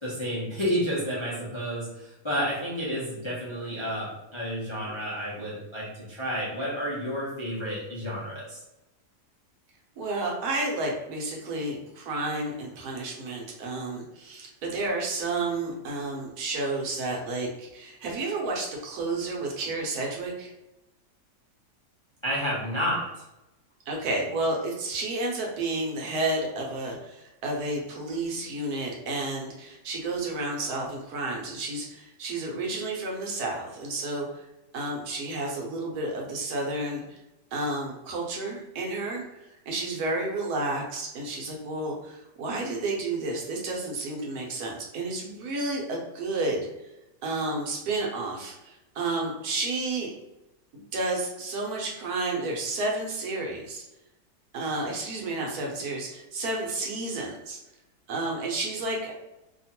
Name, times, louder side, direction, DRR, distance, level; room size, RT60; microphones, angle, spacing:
voice 1, 0.0-8.6 22.2-23.2, equal, 45° left, -8 dB, 0.3 m, -30 dB
voice 2, 10.0-20.5 23.9-34.5 34.7-37.2 37.5-46.6 47.2-50.1 50.7-53.8 54.5-57.6 58.1-59.1, right 2 dB, 70° right, -1 dB, 1.2 m, -31 dB
2.8 x 2.4 x 2.8 m, 0.95 s
omnidirectional pair, 1.7 m